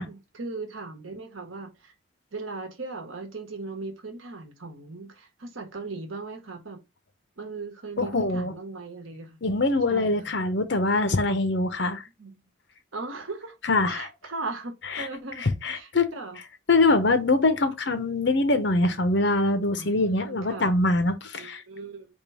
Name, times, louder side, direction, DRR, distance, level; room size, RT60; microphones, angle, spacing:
voice 1, 0.0-1.9 2.3-6.8 7.4-9.4 9.9-10.2 11.8-12.5 12.9-13.6 13.8-15.4 15.7-16.4 19.8-20.8 21.4-22.1, right 3 dB, 90° right, 1.2 m, -38 dB
voice 2, 8.0-8.5 9.4-12.0 13.6-14.1 15.0-15.1 15.6-16.1 16.7-21.6, left 2 dB, 60° left, 0.8 m, -23 dB
3.7 x 3.0 x 4.7 m
head